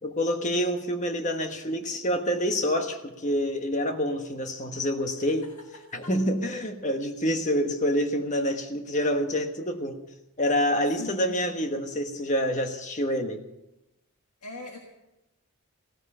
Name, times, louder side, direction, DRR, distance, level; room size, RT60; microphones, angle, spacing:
voice 1, 0.0-5.4 5.9-10.0 10.4-13.4, equal, 35° left, 5 dB, 1.4 m, -27 dB
voice 2, 5.3-6.1 11.0-11.4 14.4-14.8, left 1 dB, 90° left, 1 dB, 1.7 m, -41 dB
16.5 x 13.5 x 5.6 m, 0.94 s
head